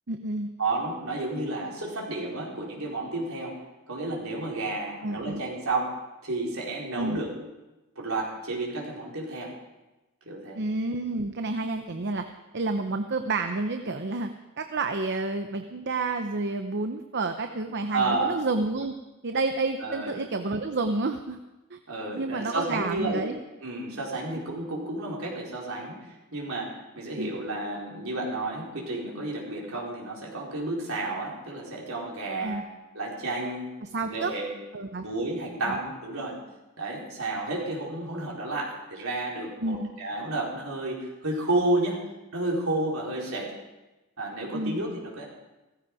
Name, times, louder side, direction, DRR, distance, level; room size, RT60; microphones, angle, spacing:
voice 1, 0.1-0.5 5.0-5.4 7.0-7.2 10.5-12.2 12.5-14.3 14.6-18.9 19.2-21.4 21.7-21.8 22.1-23.4 24.3-24.4 27.2-27.3 32.4-32.6 33.8-34.3 34.7-35.1 35.7-35.8 39.6-39.9 44.5-44.8, right 3 dB, 55° right, 7 dB, 0.8 m, -29 dB
voice 2, 0.6-7.3 8.0-9.5 10.3-10.6 17.9-18.4 19.8-20.2 21.9-23.3 23.6-32.6 32.9-33.7 34.0-34.5 35.0-36.4 36.8-42.0 42.3-43.5 44.2-45.2, right 2 dB, 70° right, -3 dB, 4.6 m, -31 dB
16.5 x 15.0 x 4.9 m, 1.1 s
head